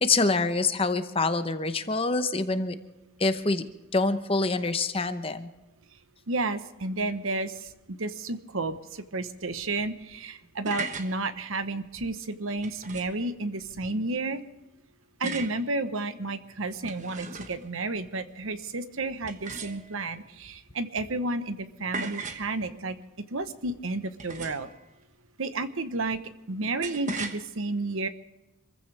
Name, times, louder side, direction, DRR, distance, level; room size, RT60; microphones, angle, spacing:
voice 1, 0.0-2.8 3.2-3.6 3.9-5.5, left 3 dB, 25° left, 10 dB, 0.9 m, -26 dB
voice 2, 6.3-7.7 8.0-14.4 15.2-23.0 23.3-24.7 25.4-26.2 26.5-28.1, right 2 dB, 70° right, 11 dB, 1.0 m, -31 dB
sound 1, 10.4-11.1 12.6-13.2 15.2-15.6 16.7-17.7 19.3-20.1 21.9-22.5 24.2-24.8 26.8-27.4, right 3 dB, 35° right, 1.1 m, -37 dB
26.0 x 15.0 x 3.4 m, 1.0 s
head